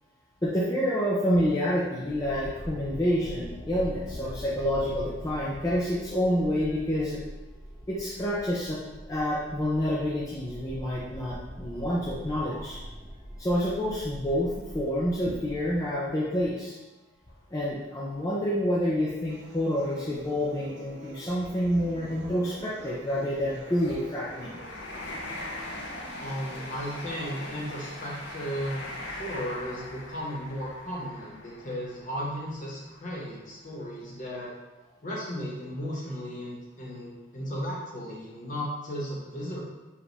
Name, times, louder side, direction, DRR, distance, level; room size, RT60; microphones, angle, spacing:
voice 1, 0.4-7.2 7.9-8.8 9.0-12.8 13.4-16.8 17.5-24.5, equal, 15° left, -7 dB, 0.5 m, -28 dB
sound 1, 2.0-15.7, equal, 5° right, 1.2 m, -43 dB
sound 2, 17.3-17.5 18.0-18.1 19.3-19.4 19.7-19.9 20.6-33.3 33.8-34.0, left 1 dB, 60° left, 0.6 m, -42 dB
sound 3, 19.3-27.3, right 2 dB, 60° right, 0.6 m, -48 dB
voice 2, 26.2-28.9 29.2-34.5 35.0-39.6, equal, 40° left, -5 dB, 1.1 m, -35 dB
5.0 x 2.5 x 3.3 m, 1.1 s
head